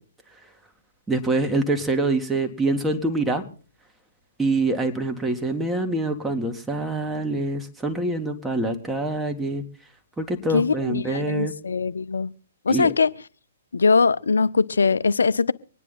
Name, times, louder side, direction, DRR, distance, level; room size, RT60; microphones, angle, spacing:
voice 1, 1.1-3.4 4.4-9.6 10.2-11.5 12.7-12.9, right 2 dB, 10° right, 1.8 m, -25 dB
voice 2, 10.5-12.3 12.6-13.1 13.7-15.5, left 4 dB, 75° left, 0.6 m, -21 dB
24.5 x 9.9 x 4.0 m
figure-of-eight pair, 125°, 0 cm